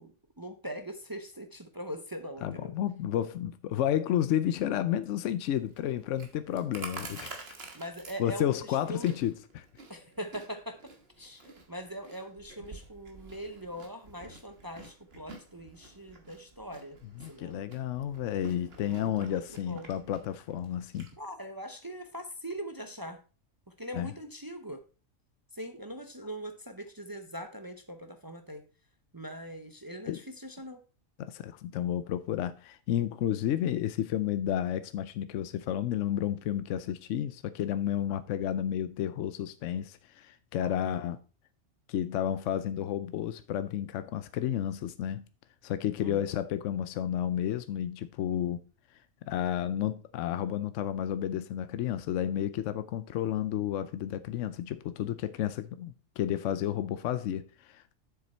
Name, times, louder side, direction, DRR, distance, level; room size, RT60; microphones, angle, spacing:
voice 1, 0.0-2.7 7.7-9.1 9.9-10.8 11.2-17.0 17.3-17.6 18.8-19.9 21.2-23.2 23.8-24.8 25.5-28.6 29.1-30.8 40.8-41.0 46.0-46.2, equal, 20° right, 0.6 m, -42 dB
voice 2, 2.4-7.4 8.2-9.7 17.1-21.1 23.9-24.1 30.1-30.2 31.2-41.2 41.9-45.2 45.6-48.6 49.2-57.9, left 10 dB, 75° left, 0.9 m, -31 dB
Chewing mastication, 5.5-21.1, right 3 dB, 50° right, 1.7 m, -50 dB
7.6 x 6.8 x 4.3 m
omnidirectional pair, 1.3 m